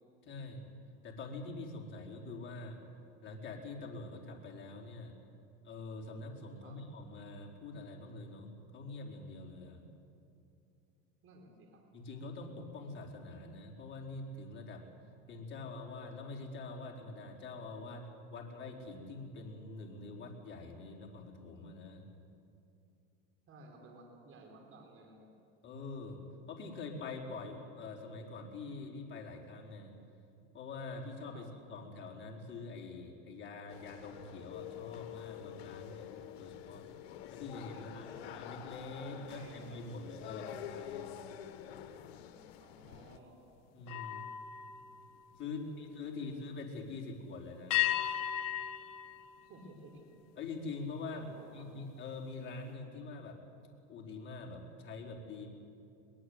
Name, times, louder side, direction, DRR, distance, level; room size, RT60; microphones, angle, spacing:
voice 1, 0.2-0.6 1.0-2.8 3.2-5.1 5.6-9.9 11.9-14.8 15.3-22.1 25.6-26.2 26.5-29.9 30.5-36.1 36.4-36.8 37.3-41.1 43.7-44.3 45.4-48.4 50.4-53.4 53.9-55.5, left 3 dB, 40° left, -1 dB, 4.5 m, -45 dB
voice 2, 11.2-11.8 23.5-25.3 31.3-31.5 37.7-38.3 39.0-39.8 42.6-43.4 45.4-46.5 49.4-50.0 51.1-51.8, right 2 dB, 45° right, 1 dB, 4.6 m, -55 dB
sound 1, 33.7-43.2, left 9 dB, 80° left, 1.4 m, -49 dB
sound 2, 34.5-40.1 40.5-40.8 43.8-46.0 47.7-50.3, left 13 dB, 55° left, 1.4 m, -40 dB
22.0 x 20.0 x 8.2 m, 2.7 s
supercardioid pair, 105°, 31 cm